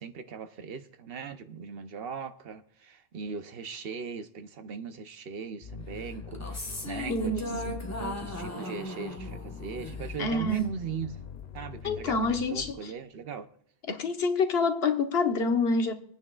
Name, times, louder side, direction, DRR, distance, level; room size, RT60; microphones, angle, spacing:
voice 1, 0.0-11.2 11.5-12.2 12.5-13.5, right 5 dB, 70° right, 1.0 m, -39 dB
sound 1, 5.6-12.7, left 6 dB, 50° left, 0.6 m, -42 dB
sound 2, 6.3-10.7, left 1 dB, 15° left, 0.9 m, -38 dB
voice 2, 7.1-7.8 10.2-10.7 11.8-12.9 13.9-15.9, left 3 dB, 80° left, 1.3 m, -27 dB
25.5 x 9.2 x 2.4 m
omnidirectional pair, 1.0 m